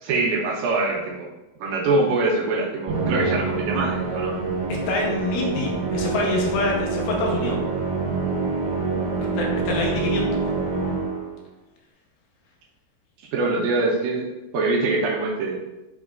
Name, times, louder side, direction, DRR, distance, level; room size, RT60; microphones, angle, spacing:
voice 1, 0.0-1.3 1.6-4.4 9.2-9.3 13.3-15.6, right 3 dB, 85° right, -3 dB, 2.1 m, -24 dB
Musical instrument, 2.9-11.4, right 4 dB, 65° right, 2.5 m, -26 dB
voice 2, 4.7-7.6 9.4-10.3, left 3 dB, 85° left, -1 dB, 2.6 m, -26 dB
6.1 x 2.3 x 2.2 m, 0.99 s
omnidirectional pair, 4.4 m